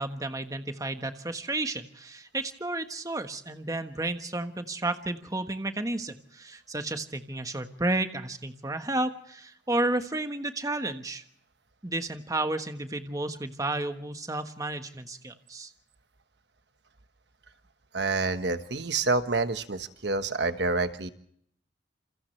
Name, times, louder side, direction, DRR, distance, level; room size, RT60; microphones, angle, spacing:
voice 1, 0.0-11.2 11.8-15.7, right 2 dB, 20° right, 7 dB, 1.4 m, -32 dB
voice 2, 17.9-21.1, right 3 dB, 65° right, 9 dB, 1.4 m, -28 dB
28.5 x 28.0 x 3.3 m, 0.67 s
head